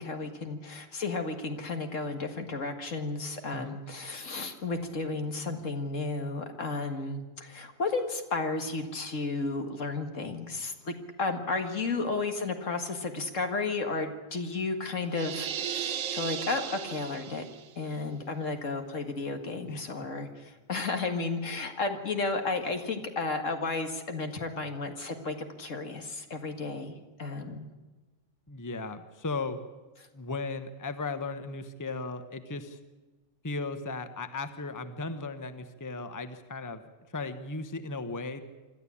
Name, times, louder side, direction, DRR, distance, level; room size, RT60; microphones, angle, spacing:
voice 1, 0.0-17.4 17.8-27.7, left 3 dB, 70° left, 6 dB, 2.2 m, -33 dB
sound 1, 15.1-17.7, right 9 dB, 80° right, 1.2 m, -35 dB
voice 2, 28.5-29.6 30.1-32.8 33.4-36.8 37.1-38.4, left 3 dB, 15° left, 10 dB, 1.0 m, -36 dB
26.0 x 13.0 x 8.5 m, 1.2 s
omnidirectional pair, 1.4 m